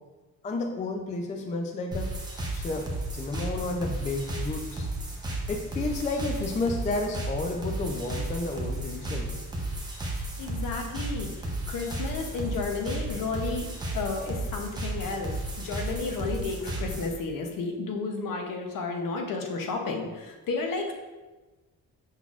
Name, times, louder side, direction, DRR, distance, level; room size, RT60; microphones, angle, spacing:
voice 1, 0.4-2.1 2.5-2.9 3.1-4.9 5.5-9.4, left 3 dB, 20° left, 3 dB, 0.3 m, -31 dB
sound 1, 1.9-17.1, right 1 dB, 10° right, 0.7 m, -33 dB
voice 2, 10.4-13.7 13.9-20.9, left 4 dB, 65° left, 3 dB, 0.8 m, -32 dB
5.6 x 4.0 x 2.4 m, 1.2 s
cardioid pair, 135°, 36 cm